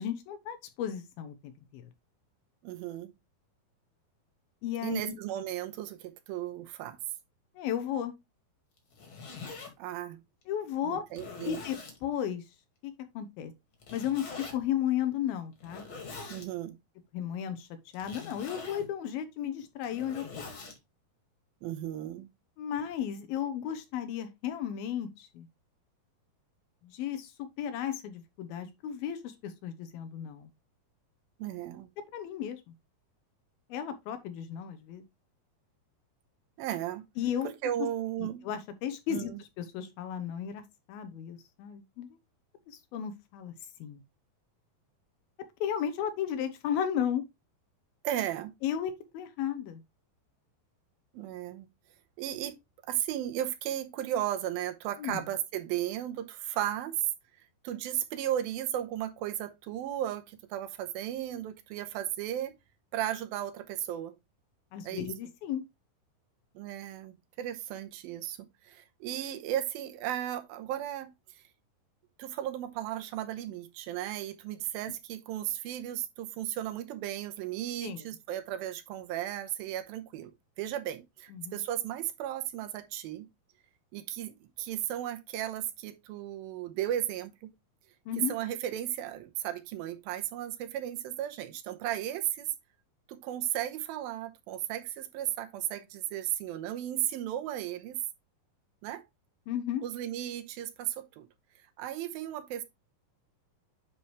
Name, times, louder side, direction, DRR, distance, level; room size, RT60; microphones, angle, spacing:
voice 1, 0.0-1.4 1.7-1.9 4.6-5.2 7.6-8.1 10.5-11.0 11.5-12.4 12.8-13.5 13.9-15.9 17.1-17.7 17.9-20.5 22.6-25.5 26.8-30.5 32.1-32.6 33.7-35.0 37.2-37.5 37.8-37.9 38.2-42.2 42.7-43.5 43.8-44.0 45.6-47.2 48.6-49.8 55.0-55.2 64.7-65.6 77.8-78.0 81.3-81.6 88.1-88.3 99.5-99.8, left 9 dB, 85° left, 2.7 m, -34 dB
voice 2, 2.6-3.1 4.8-7.0 9.8-10.2 10.8-11.6 16.3-16.8 21.6-22.3 31.4-31.9 36.6-37.1 37.4-38.4 39.1-39.4 48.0-48.5 51.1-51.7 52.2-52.5 52.9-57.1 57.6-62.5 62.9-64.1 64.8-65.1 66.6-71.4 72.2-83.3 83.9-87.5 88.3-92.5 93.1-98.0 98.8-99.0 99.8-101.3 101.8-102.6, right 12 dB, 85° right, 2.7 m, -35 dB
Zipper (clothing), 8.8-9.7 10.4-10.5 11.1-12.0 13.8-14.6 15.6-16.5 17.9-18.9 19.7-20.8, left 4 dB, 40° left, 2.4 m, -44 dB
10.0 x 4.7 x 3.1 m
omnidirectional pair, 4.2 m